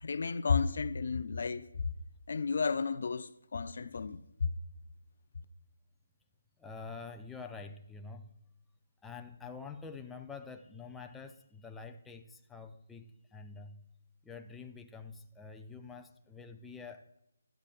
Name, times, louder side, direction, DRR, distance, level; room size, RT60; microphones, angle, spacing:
voice 1, 0.0-1.9 2.3-4.5, left 5 dB, 60° left, 0.5 m, -32 dB
voice 2, 6.6-8.3 9.0-13.8 14.2-17.2, left 4 dB, 5° left, 0.6 m, -47 dB
16.0 x 12.0 x 2.5 m
figure-of-eight pair, 155°, 0 cm